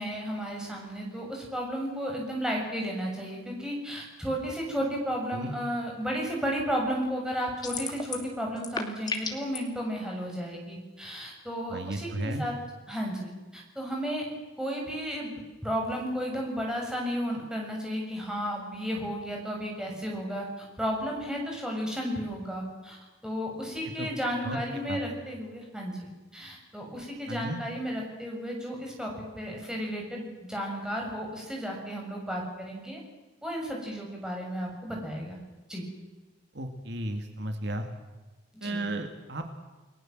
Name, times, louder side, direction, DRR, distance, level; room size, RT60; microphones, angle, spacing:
voice 1, 0.0-12.5 12.9-14.3 14.6-15.3 15.6-33.0 33.4-35.4 35.7-35.9 38.5-38.8, equal, 5° right, -1 dB, 7.0 m, -33 dB
sound 1, 7.6-8.3 8.6-9.6, left 4 dB, 20° left, 2.6 m, -33 dB
voice 2, 11.7-12.4 24.0-24.1 24.4-24.6 24.9-25.0 27.3-27.6 36.5-37.9 38.6-39.5, right 1 dB, 55° right, 5 dB, 2.4 m, -34 dB
30.0 x 19.5 x 7.8 m, 1.2 s
head